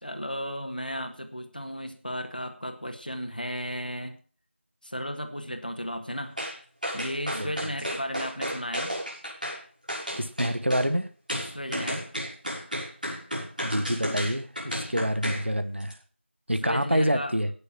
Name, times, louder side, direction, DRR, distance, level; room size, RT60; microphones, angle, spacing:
voice 1, 0.0-4.1 4.8-6.4 6.9-8.9 11.5-12.0 14.0-14.2 16.6-17.3, equal, 45° left, 5 dB, 1.8 m, -34 dB
sound 1, 6.4-6.6 6.8-9.6 9.9-10.9 11.3-15.4 15.8-15.9, equal, 40° right, 6.7 m, -32 dB
voice 2, 7.3-7.7 10.1-11.1 13.6-16.0 16.5-17.5, equal, 65° right, 9 dB, 1.4 m, -27 dB
17.0 x 6.8 x 6.0 m, 0.40 s
figure-of-eight pair, 180°, 7 cm